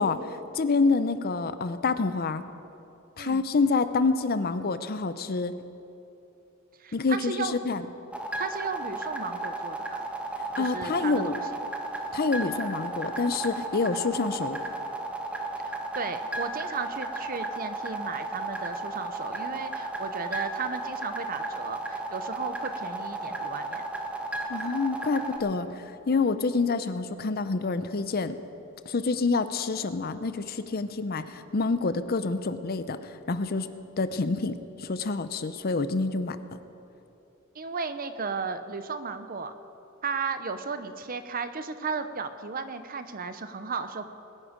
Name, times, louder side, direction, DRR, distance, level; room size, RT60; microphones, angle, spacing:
voice 1, 0.0-2.4 3.2-5.5 6.9-7.8 10.6-11.4 12.1-14.6 24.5-28.4 28.9-33.7 34.0-36.4, left 4 dB, 45° left, 12 dB, 0.6 m, -27 dB
voice 2, 6.8-7.7 8.4-10.0 10.6-11.3 15.6-23.8 37.5-39.5 40.0-44.1, right 5 dB, 45° right, 10 dB, 0.7 m, -35 dB
sound 1, 8.1-25.4, right 2 dB, 5° right, 1.0 m, -34 dB
21.5 x 9.8 x 5.1 m, 2.9 s
head